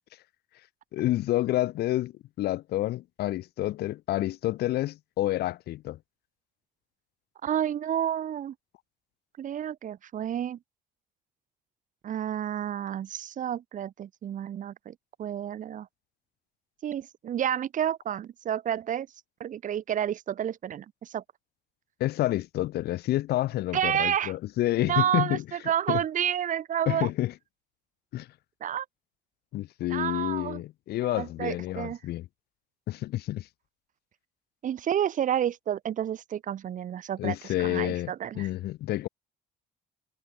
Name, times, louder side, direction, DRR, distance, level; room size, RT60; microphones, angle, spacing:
voice 1, 0.9-2.1 2.4-6.0 22.0-25.4 25.9-26.0 26.9-27.3 28.1-28.3 29.5-32.2 32.9-33.5 37.2-39.1, left 15 dB, 70° left, 1.1 m, -29 dB
voice 2, 7.4-8.5 9.4-10.6 12.0-15.9 16.8-19.1 19.4-21.2 23.7-24.3 24.8-27.1 28.6-28.8 29.9-30.6 31.0-32.0 34.6-38.5, right 10 dB, 50° right, 1.3 m, -30 dB
cardioid pair, 110°, 17 cm